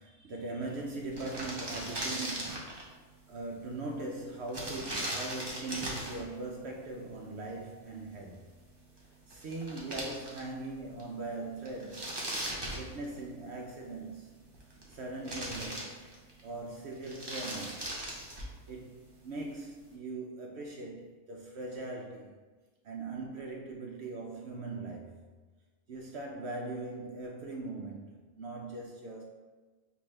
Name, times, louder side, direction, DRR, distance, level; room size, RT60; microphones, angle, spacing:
voice 1, 0.0-2.8 3.3-8.4 9.3-12.1 12.7-14.5 14.9-16.1 16.4-18.0 18.7-22.3 22.8-25.3 25.9-29.2, right 2 dB, 70° right, 0.6 m, -40 dB
sound 1, 0.7-0.8 1.0-2.9 4.5-6.3 9.0-9.1 9.3-10.7 11.0-11.1 11.7-13.4 14.4-15.0 15.2-16.4 16.9-18.6, right 1 dB, 30° right, 0.5 m, -38 dB
5.7 x 2.6 x 3.2 m
omnidirectional pair, 1.6 m